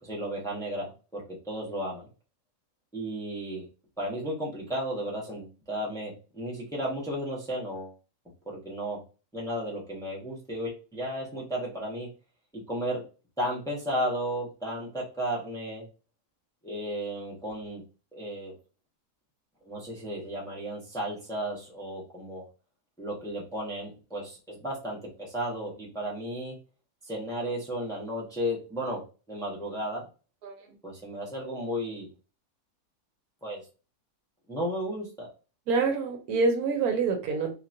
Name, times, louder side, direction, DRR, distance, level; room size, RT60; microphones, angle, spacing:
voice 1, 0.0-2.1 2.9-3.6 4.0-7.9 8.4-9.0 9.3-12.1 12.5-13.0 13.4-15.8 16.6-17.8 18.1-18.5 19.6-22.5 23.0-26.5 27.0-29.0 29.3-30.0 30.8-32.1 33.4-33.6 34.5-35.3, equal, 5° left, -5 dB, 0.9 m, -34 dB
voice 2, 35.7-37.5, right 4 dB, 70° right, 4 dB, 1.1 m, -26 dB
3.0 x 2.8 x 2.5 m, 0.33 s
omnidirectional pair, 1.7 m